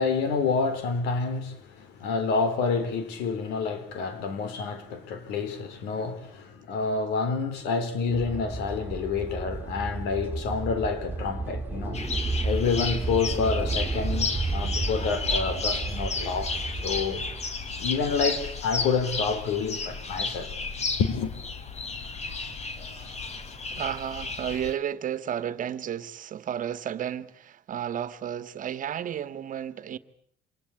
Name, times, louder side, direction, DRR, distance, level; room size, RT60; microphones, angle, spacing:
voice 1, 0.0-12.0 12.4-17.2 17.8-20.5 21.0-21.4, left 5 dB, 90° left, 3.8 m, -28 dB
sound 1, 8.1-17.5, right 3 dB, 10° right, 4.1 m, -32 dB
sound 2, 11.9-24.7, left 4 dB, 40° left, 3.2 m, -33 dB
voice 2, 23.8-30.0, right 9 dB, 50° right, 1.6 m, -32 dB
27.0 x 20.5 x 8.5 m
cardioid pair, 110°, 17 cm